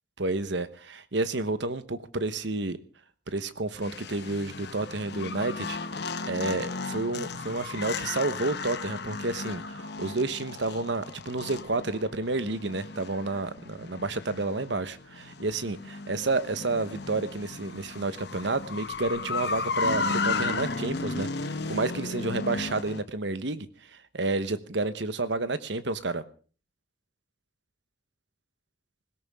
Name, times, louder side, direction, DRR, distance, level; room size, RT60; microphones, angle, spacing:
voice 1, 0.2-2.8 3.3-5.8 6.3-23.7 24.1-26.2, right 2 dB, 65° right, 13 dB, 1.1 m, -30 dB
sound 1, 3.8-23.0, left 4 dB, 55° left, 1.1 m, -35 dB
20.0 x 17.0 x 3.6 m, 0.39 s
head